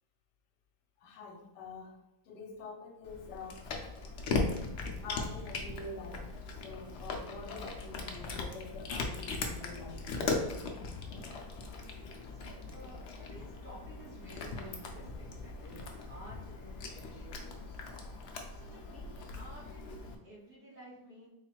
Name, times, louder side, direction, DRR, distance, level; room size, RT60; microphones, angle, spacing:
voice 1, 1.0-3.7 5.0-10.7, left 3 dB, 80° left, 4 dB, 1.2 m, -46 dB
Cat, 3.0-20.1, left 3 dB, 65° left, 0.6 m, -39 dB
voice 2, 12.3-17.6 18.5-21.3, equal, 40° right, -6 dB, 1.6 m, -53 dB
3.9 x 2.4 x 4.4 m, 0.89 s
omnidirectional pair, 1.8 m